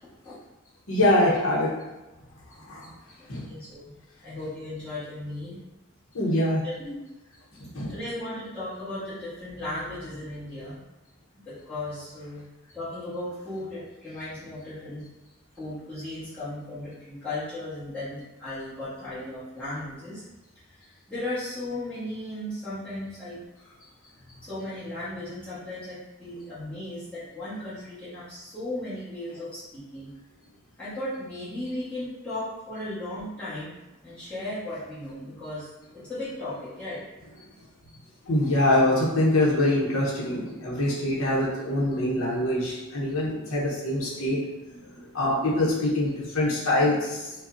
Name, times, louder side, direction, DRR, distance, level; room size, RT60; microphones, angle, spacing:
voice 1, 0.9-1.7 2.6-2.9 3.3-3.5 6.1-6.6 7.6-7.9 38.3-44.4 44.7-47.3, left 1 dB, 85° left, -5 dB, 0.9 m, -24 dB
voice 2, 2.3-2.7 3.4-3.9 4.2-5.6 6.6-7.0 7.9-10.8 11.4-12.4 12.7-15.0 15.6-20.2 20.8-23.4 24.2-30.1 30.8-33.7 34.0-35.7 36.0-37.0, left 1 dB, 5° left, -15 dB, 1.4 m, -36 dB
4.9 x 2.3 x 2.6 m, 1.0 s
head